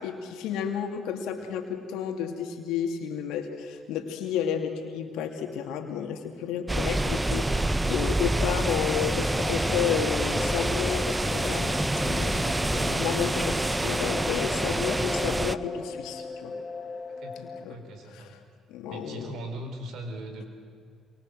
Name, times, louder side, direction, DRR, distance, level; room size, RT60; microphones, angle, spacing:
voice 1, 0.0-11.8 12.1-16.5 17.4-17.8 18.1-18.2 18.7-19.4, left 8 dB, 75° left, 5 dB, 2.6 m, -31 dB
sound 1, 6.7-15.5, right 2 dB, 15° right, 0.9 m, -27 dB
sound 2, 7.6-12.9, left 2 dB, 20° left, 0.7 m, -36 dB
sound 3, 8.7-17.6, left 4 dB, 40° left, 3.4 m, -38 dB
voice 2, 17.2-18.3 18.9-20.5, right 1 dB, 70° right, 5 dB, 3.8 m, -40 dB
28.0 x 24.0 x 7.8 m, 2.2 s
hypercardioid pair, 50°, 0 cm